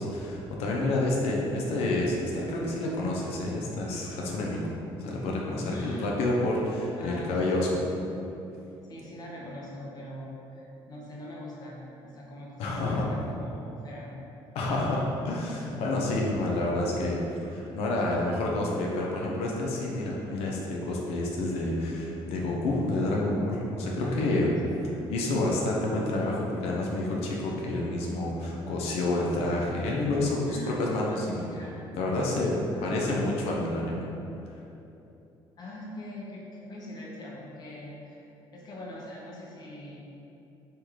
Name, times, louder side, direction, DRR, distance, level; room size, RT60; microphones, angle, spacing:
voice 1, 0.0-4.6 5.0-7.8 12.6-13.1 14.5-24.5 24.8-31.5 31.9-32.5 32.8-34.1, left 2 dB, 80° left, -3 dB, 0.5 m, -29 dB
voice 2, 5.7-6.1 7.0-7.7 8.8-14.2 18.1-18.3 24.0-25.0 30.5-30.8 31.1-31.9 32.7-33.1 35.6-38.3 38.5-40.1, left 1 dB, 40° left, -4 dB, 0.7 m, -43 dB
3.4 x 2.4 x 3.0 m, 2.9 s
cardioid pair, 110°, 10 cm